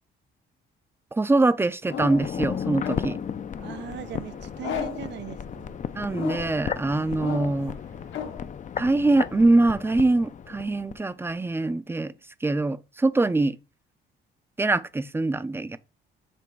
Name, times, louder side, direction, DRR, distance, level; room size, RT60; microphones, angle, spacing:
voice 1, 1.1-3.2 5.9-7.8 8.8-12.1 12.4-13.6 14.6-15.8, right 2 dB, 10° right, 0.5 m, -23 dB
sound 1, 1.9-2.4 2.8-3.3 4.6-5.2 6.1-6.7 7.2-7.7 8.1-8.5, left 8 dB, 75° left, 1.2 m, -33 dB
sound 2, 1.9-11.0 11.3-11.4, left 7 dB, 40° left, 0.5 m, -35 dB
sound 3, 2.8-8.6, right 3 dB, 80° right, 1.9 m, -53 dB
voice 2, 3.6-5.8, right 11 dB, 65° right, 0.5 m, -39 dB
7.0 x 3.0 x 4.7 m
cardioid pair, 90°, 20 cm